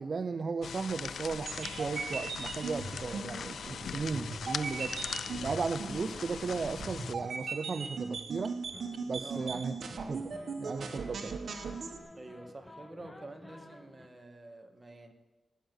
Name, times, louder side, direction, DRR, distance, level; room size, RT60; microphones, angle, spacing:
voice 1, 0.0-5.0 5.4-8.6 9.1-9.7 10.1-11.4, right 4 dB, 45° right, 9 dB, 0.5 m, -36 dB
sound 1, 0.6-7.1, left 7 dB, 70° left, 0.4 m, -40 dB
sound 2, 1.3-12.0, right 4 dB, 60° right, 1.6 m, -39 dB
sound 3, 2.9-14.1, left 1 dB, 10° left, 0.7 m, -53 dB
voice 2, 9.2-9.6 12.1-15.1, right 2 dB, 15° right, 4 dB, 1.7 m, -48 dB
18.0 x 8.1 x 9.2 m, 1.1 s
wide cardioid pair, 150°, 0 cm